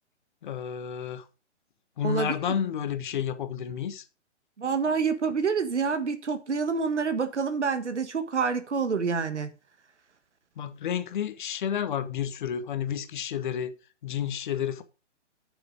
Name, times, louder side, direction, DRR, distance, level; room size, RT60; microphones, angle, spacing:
voice 1, 0.4-1.3 2.0-4.0 10.6-13.7 14.0-14.8, left 8 dB, 40° left, 1.3 m, -31 dB
voice 2, 2.0-2.4 4.6-9.5, right 5 dB, 70° right, 1.5 m, -27 dB
9.6 x 6.9 x 5.2 m
figure-of-eight pair, 135°, 36 cm